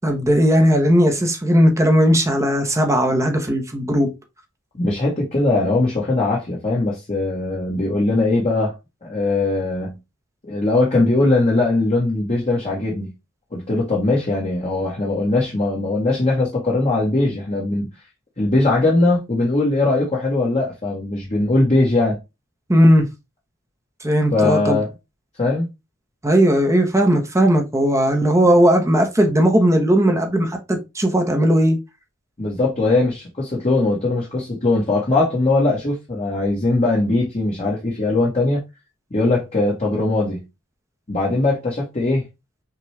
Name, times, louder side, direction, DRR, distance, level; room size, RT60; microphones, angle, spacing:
voice 1, 0.0-4.1 22.7-23.1 24.0-24.8 26.2-31.8, equal, 15° right, 0.7 m, -17 dB
voice 2, 4.7-8.7 9.0-10.0 10.4-13.1 13.5-17.9 18.4-22.2 24.3-24.9 25.4-25.6 32.4-38.6 39.1-40.4 41.1-42.2, left 2 dB, 30° left, 1.1 m, -20 dB
5.7 x 2.3 x 3.1 m
head